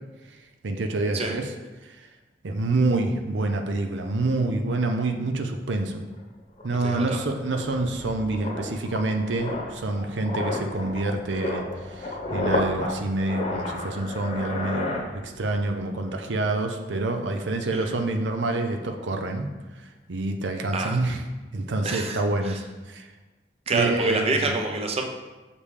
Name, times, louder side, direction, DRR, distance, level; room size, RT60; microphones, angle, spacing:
voice 1, 0.6-1.5 1.8-2.1 2.4-6.0 6.6-19.5 19.8-21.2 21.5-23.1 23.7-24.5, right 2 dB, 85° right, 5 dB, 0.6 m, -27 dB
sound 1, 6.2-6.3 6.6-15.7 15.9-16.2, left 2 dB, 35° left, 1.0 m, -32 dB
voice 2, 6.8-7.3 17.7-17.9 20.7-21.0 21.8-22.6 23.7-25.0, right 3 dB, 35° right, 3 dB, 0.6 m, -27 dB
6.7 x 5.2 x 3.3 m, 1.2 s
head